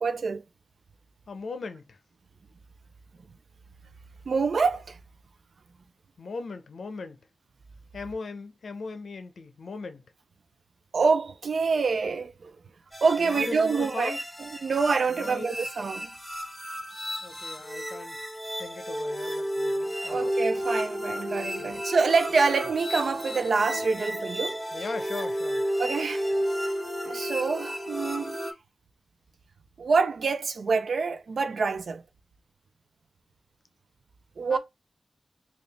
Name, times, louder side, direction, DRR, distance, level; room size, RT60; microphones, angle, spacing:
voice 1, 0.0-0.4 4.3-5.0 10.9-12.5 13.0-16.1 20.0-24.6 25.8-26.2 27.0-28.4 29.8-32.0 34.4-34.6, right 4 dB, 75° right, 0.5 m, -26 dB
voice 2, 1.3-2.0 6.2-7.2 7.9-10.1 13.2-14.2 15.1-15.7 17.2-18.2 18.5-20.3 21.6-21.8 24.7-25.6 34.5-34.6, left 4 dB, 80° left, 0.7 m, -38 dB
sound 1, 12.9-28.5, equal, 5° right, 0.9 m, -32 dB
3.8 x 2.4 x 3.4 m
wide cardioid pair, 85°, 0 cm